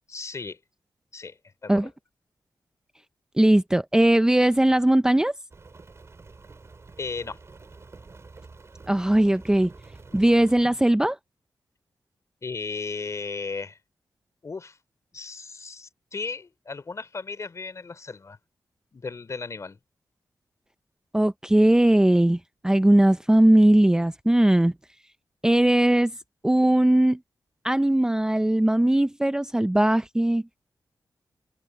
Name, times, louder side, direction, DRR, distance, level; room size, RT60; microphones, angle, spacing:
voice 1, 0.1-0.6 1.1-1.4 1.6-1.7 7.0-7.4 12.4-13.8 14.4-14.8 15.1-18.4 18.9-19.8, left 4 dB, 40° left, 3.2 m, -35 dB
voice 2, 3.4-5.3 8.9-9.7 10.1-11.2 21.1-22.4 22.6-24.7 25.4-26.1 26.4-27.2 27.6-30.4, right 1 dB, 10° right, 0.6 m, -19 dB
Rain, 5.5-10.7, right 3 dB, 40° right, 3.4 m, -48 dB
wide cardioid pair, 100°, 8 cm